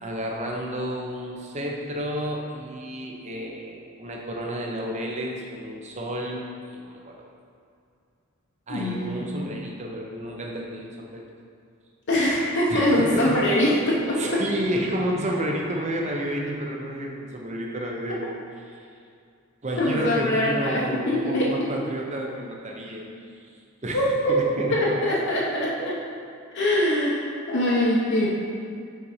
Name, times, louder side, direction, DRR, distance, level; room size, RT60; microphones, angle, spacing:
voice 1, 0.0-7.3 8.7-11.3 12.7-13.4 14.2-18.3 18.7-18.9 19.6-23.1 23.4-23.5 23.8-25.0, equal, 30° right, -1 dB, 0.7 m, -31 dB
voice 2, 8.7-9.3 12.1-14.4 18.1-18.2 19.8-21.5 23.9-24.4 24.7-26.0 26.5-28.3, left 1 dB, 50° left, -6 dB, 0.8 m, -23 dB
5.7 x 4.0 x 4.9 m, 2.4 s
head